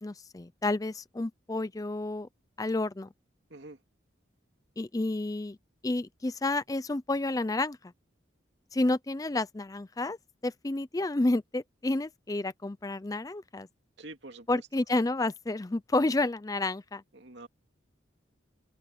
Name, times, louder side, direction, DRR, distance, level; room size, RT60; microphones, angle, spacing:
voice 1, 0.0-2.3 2.6-3.1 4.8-5.6 5.8-7.9 8.7-10.2 10.4-13.7 14.5-17.0, left 2 dB, 20° left, 0.4 m, -30 dB
voice 2, 14.0-14.6 17.1-17.5, right 2 dB, 60° right, 2.7 m, -46 dB
head